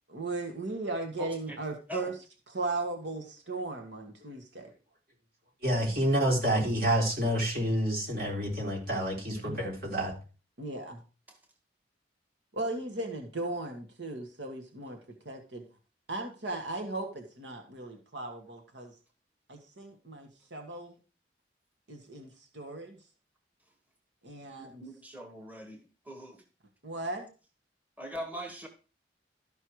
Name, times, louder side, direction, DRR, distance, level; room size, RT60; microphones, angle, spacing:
voice 1, 0.1-2.2 2.5-4.7 9.4-9.6 10.6-11.0 12.5-15.0 15.2-15.6 16.1-18.9 19.5-21.0 21.9-23.0 24.2-24.8 26.8-27.3, right 2 dB, 80° right, 4 dB, 1.6 m, -37 dB
voice 2, 5.6-10.2, right 1 dB, 55° right, -1 dB, 3.7 m, -28 dB
voice 3, 24.6-25.8 26.1-26.4 28.0-28.7, right 1 dB, 10° right, 4 dB, 1.2 m, -41 dB
13.0 x 5.6 x 4.7 m, 0.34 s
head